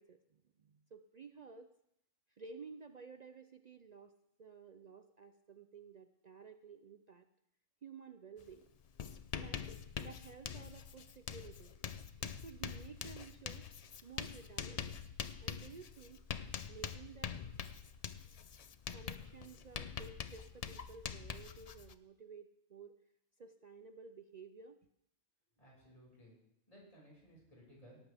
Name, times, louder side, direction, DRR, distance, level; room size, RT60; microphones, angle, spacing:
voice 1, 0.0-1.7 2.3-4.1 4.4-7.2 7.8-8.7 9.3-9.7 10.0-11.8 12.2-13.7 14.0-15.0 15.4-16.3 16.7-17.4 18.9-23.0 23.4-24.8, right 5 dB, 50° right, 8 dB, 0.5 m, -54 dB
Writing, 8.4-8.5 8.8-21.9, left 7 dB, 55° left, 0.4 m, -45 dB
voice 2, 25.6-26.3 26.7-28.0, equal, 30° left, -4 dB, 6.1 m, -59 dB
17.5 x 13.5 x 3.5 m, 0.79 s
omnidirectional pair, 1.3 m